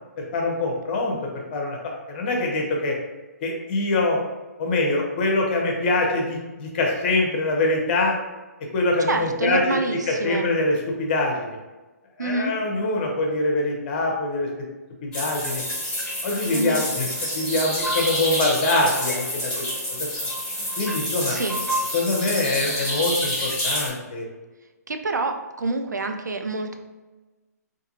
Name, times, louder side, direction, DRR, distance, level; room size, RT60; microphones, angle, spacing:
voice 1, 0.2-1.2 1.5-1.8 2.1-3.0 3.4-4.2 4.6-8.1 8.7-9.8 10.1-11.5 12.2-14.5 15.0-15.6 16.2-17.1 17.3-19.5 19.9-20.1 20.8-21.4 21.9-24.3, left 2 dB, 35° left, 0 dB, 0.7 m, -24 dB
voice 2, 9.1-10.5 12.2-12.5 16.5-16.9 21.3-21.6 24.9-26.8, right 3 dB, 80° right, 5 dB, 0.4 m, -27 dB
sound 1, 15.1-23.9, equal, 10° left, 1.3 m, -28 dB
2.6 x 2.5 x 2.7 m, 1.2 s
figure-of-eight pair, 135°, 9 cm